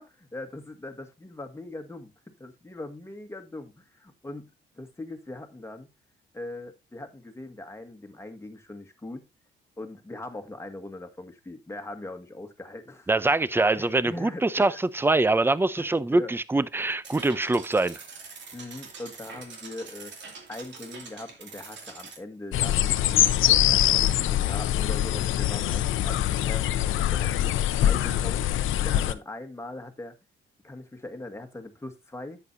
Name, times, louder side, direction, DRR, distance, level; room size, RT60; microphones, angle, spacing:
voice 1, 0.0-5.9 6.3-9.3 9.8-13.1 13.7-14.8 15.8-16.3 18.5-20.2 20.5-26.8 27.1-28.4 28.8-30.1 30.6-32.4, left 2 dB, 15° left, 1.7 m, -41 dB
voice 2, 13.1-18.0, right 2 dB, 10° right, 0.6 m, -24 dB
sound 1, 17.0-22.2, right 4 dB, 65° right, 2.5 m, -44 dB
sound 2, 22.5-29.1, left 12 dB, 80° left, 0.7 m, -23 dB
10.5 x 8.2 x 2.7 m
cardioid pair, 90°, 20 cm